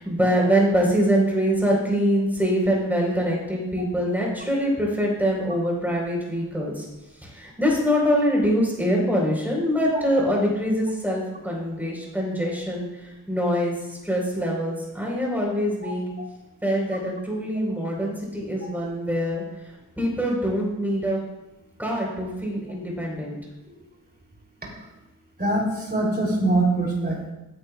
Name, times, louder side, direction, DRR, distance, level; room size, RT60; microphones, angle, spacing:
voice 1, 0.0-6.8 7.2-16.1 16.6-19.4 20.0-21.2 21.8-23.4, equal, 5° right, -2 dB, 4.2 m, -24 dB
voice 2, 25.4-27.3, right 2 dB, 25° right, -2 dB, 3.4 m, -23 dB
16.0 x 9.6 x 2.4 m, 1.0 s
wide cardioid pair, 120°, 36 cm